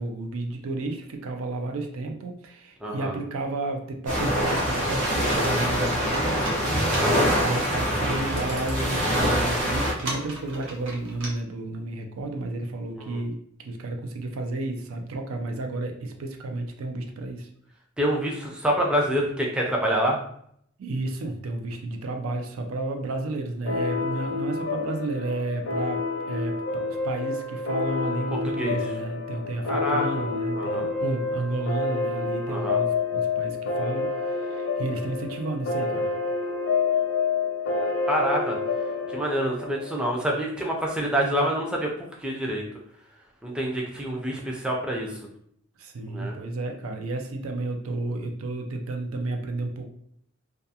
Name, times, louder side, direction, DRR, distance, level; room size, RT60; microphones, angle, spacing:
voice 1, 0.0-17.5 20.8-36.1 45.8-49.9, right 2 dB, 90° right, 4 dB, 0.4 m, -32 dB
voice 2, 2.8-3.2 7.0-7.3 13.0-13.2 18.0-20.2 28.6-28.8 29.7-30.9 32.5-32.8 38.1-38.6 39.1-42.6 43.4-45.2 46.1-46.3, equal, 5° right, -2 dB, 0.3 m, -27 dB
sound 1, 4.1-9.9, equal, 35° right, 0.8 m, -24 dB
Computer keyboard, 4.3-11.3, right 1 dB, 65° right, 0.8 m, -39 dB
sound 2, 23.7-40.8, left 4 dB, 75° left, 0.5 m, -28 dB
2.3 x 2.3 x 2.7 m, 0.67 s
head